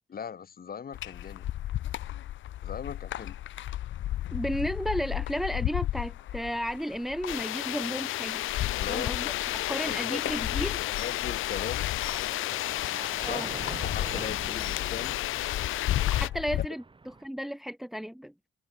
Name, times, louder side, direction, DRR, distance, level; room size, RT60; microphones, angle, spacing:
voice 1, 0.1-1.5 2.6-3.4 8.7-9.3 9.7-10.2 10.6-11.8 13.2-13.5 13.8-15.2, left 7 dB, 50° left, 4.1 m, -39 dB
sound 1, 0.9-16.7, left 13 dB, 75° left, 1.0 m, -34 dB
voice 2, 4.3-8.4 8.9-9.3 9.7-10.8 13.2-13.5 16.1-18.3, equal, ahead, 0.9 m, -33 dB
sound 2, 7.3-16.3, left 16 dB, 90° left, 1.8 m, -32 dB
sound 3, 11.4-17.3, right 3 dB, 25° right, 6.4 m, -45 dB
cardioid pair, 90°, 20 cm